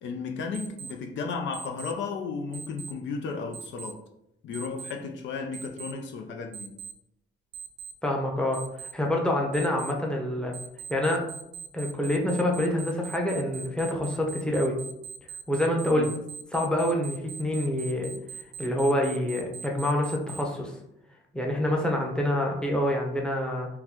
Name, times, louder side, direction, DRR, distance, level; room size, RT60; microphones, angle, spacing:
voice 1, 0.0-4.0 4.4-6.8 15.8-16.1, left 5 dB, 70° left, 0.5 m, -34 dB
Alarm, 0.5-0.9 1.5-1.9 2.5-2.9 3.5-3.9 4.5-4.9 5.5-5.9 6.5-6.9 7.5-7.9 8.5-8.9 9.5-9.9 10.5-20.4, right 6 dB, 60° right, 0.6 m, -40 dB
voice 2, 8.0-10.5 10.9-11.2 11.7-14.8 15.5-16.1 16.5-18.1 18.6-20.7 21.3-23.7, left 1 dB, 5° left, 0.7 m, -26 dB
3.7 x 2.2 x 2.9 m
cardioid pair, 90°, 20 cm